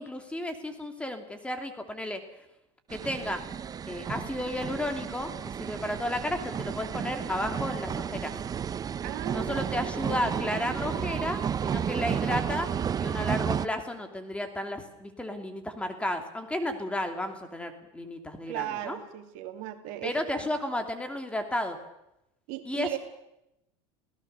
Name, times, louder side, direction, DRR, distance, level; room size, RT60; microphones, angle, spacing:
voice 1, 0.0-2.2 2.9-3.4 3.9-8.4 9.3-12.7 13.0-19.0 20.0-21.8 22.7-23.0, left 1 dB, 10° left, 6 dB, 2.7 m, -33 dB
sound 1, 2.9-13.7, right 8 dB, 25° right, 0.7 m, -32 dB
voice 2, 9.0-9.7 18.5-20.5 22.5-23.0, right 13 dB, 60° right, 6 dB, 2.6 m, -37 dB
27.5 x 17.5 x 6.8 m, 0.86 s
supercardioid pair, 115°, 15 cm